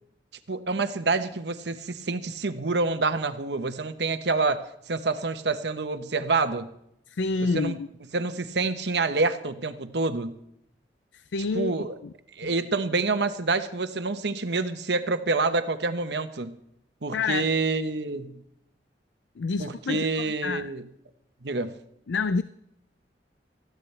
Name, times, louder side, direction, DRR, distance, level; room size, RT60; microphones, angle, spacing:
voice 1, 0.5-6.7 7.5-7.8 8.1-10.4 11.5-11.9 12.4-16.6 17.0-18.4 19.6-20.8 21.4-21.7, right 3 dB, 70° right, 9 dB, 1.0 m, -27 dB
voice 2, 7.1-7.9 11.1-11.7 12.0-12.1 12.4-12.5 17.1-17.5 19.4-20.7 22.1-22.4, left 4 dB, 85° left, 14 dB, 0.4 m, -28 dB
20.0 x 14.5 x 3.3 m, 0.76 s
head